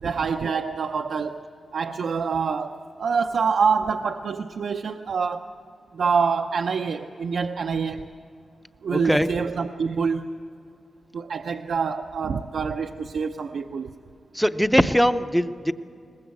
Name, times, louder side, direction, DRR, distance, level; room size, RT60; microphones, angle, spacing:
voice 1, 0.0-1.4 1.7-5.5 5.9-8.1 8.8-10.3 11.1-13.9, right 5 dB, 65° right, 6 dB, 0.6 m, -26 dB
voice 2, 8.9-9.3 14.3-15.7, equal, ahead, 11 dB, 0.5 m, -21 dB
22.0 x 20.0 x 8.2 m, 2.5 s
wide cardioid pair, 155°, 0 cm